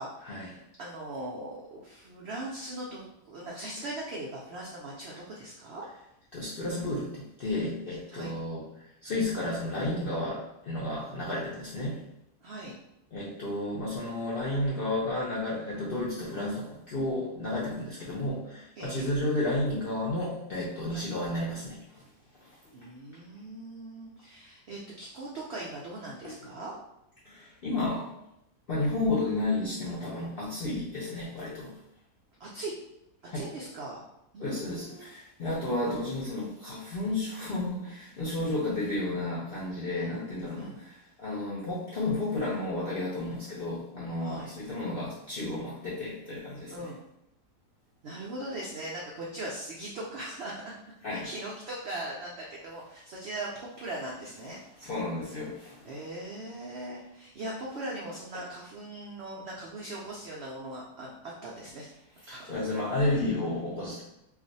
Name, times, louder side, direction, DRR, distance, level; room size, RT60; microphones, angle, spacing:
voice 1, 0.0-5.8 8.1-8.3 12.4-12.8 18.8-19.2 20.9-21.0 22.7-26.7 30.6-30.8 32.4-32.7 33.3-34.0 34.3-35.1 39.9-40.1 40.6-40.8 44.2-44.5 46.7-47.0 48.0-50.8 51.1-54.6 55.8-61.1 61.4-61.9 62.3-62.4, right 1 dB, 85° right, -4 dB, 0.5 m, -40 dB
voice 2, 6.3-8.6 9.0-12.0 13.1-22.1 22.4-22.6 26.2-26.3 27.2-28.1 28.7-31.7 33.3-33.5 34.4-40.9 41.2-46.9 51.0-51.3 54.8-55.9 62.3-64.0, left 2 dB, 70° left, -7 dB, 0.5 m, -32 dB
2.5 x 2.4 x 3.9 m, 0.82 s
omnidirectional pair, 1.7 m